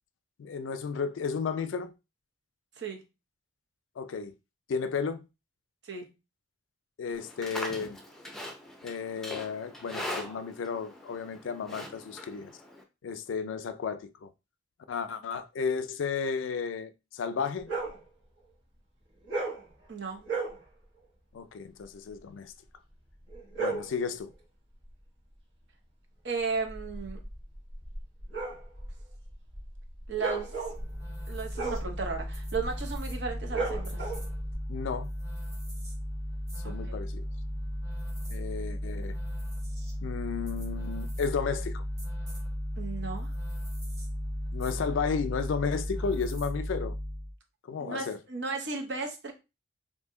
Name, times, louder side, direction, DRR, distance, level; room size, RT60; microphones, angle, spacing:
voice 1, 0.4-1.9 4.0-4.3 4.7-5.2 7.0-8.0 8.8-12.5 13.0-14.3 14.9-17.7 21.3-22.5 23.6-24.3 34.7-35.1 36.7-37.2 38.3-39.2 40.0-41.8 44.5-47.0 47.7-48.2, left 5 dB, 90° left, 0.4 m, -33 dB
Livestock farm animals working animals, 7.1-12.8, left 1 dB, ahead, 0.5 m, -41 dB
sound 1, 17.6-18.0 19.2-19.7 20.2-20.6 23.3-24.0 26.5-34.5, right 3 dB, 85° right, 1.2 m, -36 dB
voice 2, 19.9-20.3 26.2-27.2 30.1-30.5 31.3-34.1 36.6-37.0 42.8-43.3 47.8-49.3, right 4 dB, 65° right, 0.8 m, -35 dB
sound 2, 30.7-47.3, equal, 20° right, 1.5 m, -35 dB
2.7 x 2.6 x 3.6 m
head